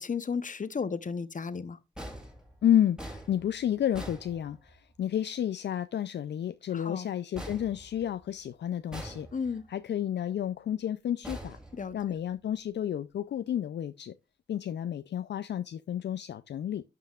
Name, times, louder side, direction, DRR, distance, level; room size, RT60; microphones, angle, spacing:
voice 1, 0.0-1.8 6.7-7.1 9.3-9.6 11.7-12.0, left 5 dB, 45° left, 0.8 m, -34 dB
sound 1, 2.0-5.0 7.3-8.4 8.9-9.7 11.2-12.3, right 1 dB, 5° right, 2.6 m, -44 dB
voice 2, 2.6-9.3 9.7-11.6 11.9-14.1 14.5-16.8, left 10 dB, 70° left, 0.4 m, -31 dB
11.5 x 5.5 x 2.4 m
cardioid pair, 50°, 19 cm